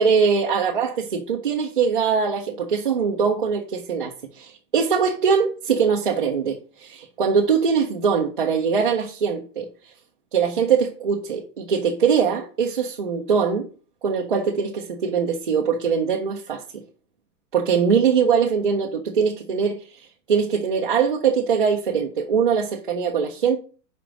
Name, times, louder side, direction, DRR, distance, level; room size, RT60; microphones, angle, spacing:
voice 1, 0.0-9.7 10.3-13.7 14.0-16.8 17.5-23.6, right 6 dB, 35° right, 0.4 m, -22 dB
5.0 x 4.7 x 5.9 m
supercardioid pair, 180°, 48 cm